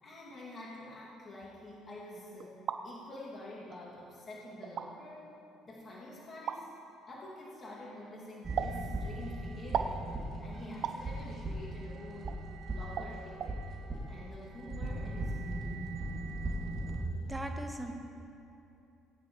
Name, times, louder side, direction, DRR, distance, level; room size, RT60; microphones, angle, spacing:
voice 1, 0.0-5.4 5.6-6.7 7.1-12.4 12.7-13.6 14.1-15.7, left 1 dB, 40° left, -6 dB, 2.6 m, -48 dB
sound 1, 2.4-2.8 3.7-3.8 4.6-4.9 6.5-6.6 8.6-8.8 9.7-10.0 10.8-11.0 12.3-12.4 13.0-13.1 13.4-13.5, right 8 dB, 60° right, 0.6 m, -34 dB
sound 2, 8.4-17.0, right 1 dB, 40° right, 2.8 m, -39 dB
voice 2, 16.8-17.9, right 2 dB, 15° right, 4 dB, 1.3 m, -38 dB
20.5 x 9.6 x 3.3 m, 2.7 s
supercardioid pair, 75°, 0 cm